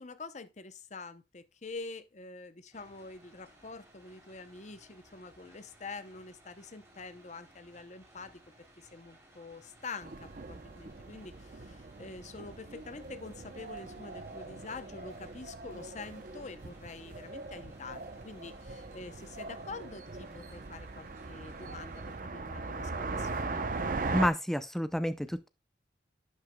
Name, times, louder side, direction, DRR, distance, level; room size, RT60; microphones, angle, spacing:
voice 1, 0.0-8.4 8.8-23.6, left 3 dB, 40° left, 0.7 m, -46 dB
sound 1, 2.7-22.2, right 1 dB, 15° right, 3.6 m, -60 dB
sound 2, 10.0-24.3, right 3 dB, 50° right, 0.7 m, -40 dB
voice 2, 24.1-25.5, equal, ahead, 0.5 m, -29 dB
11.0 x 8.0 x 2.3 m
head